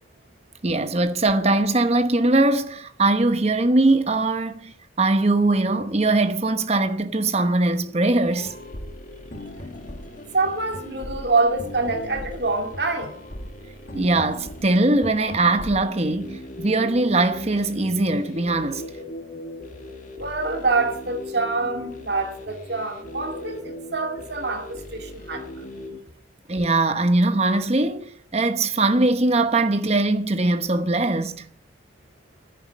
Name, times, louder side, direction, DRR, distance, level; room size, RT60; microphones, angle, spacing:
voice 1, 0.6-8.5 13.9-18.9 26.5-31.4, right 2 dB, 35° right, 0.9 m, -21 dB
sound 1, 8.2-26.0, left 1 dB, 40° left, 1.9 m, -38 dB
voice 2, 10.3-13.2 20.2-25.5, right 3 dB, 55° right, 2.1 m, -25 dB
10.5 x 9.2 x 7.4 m
head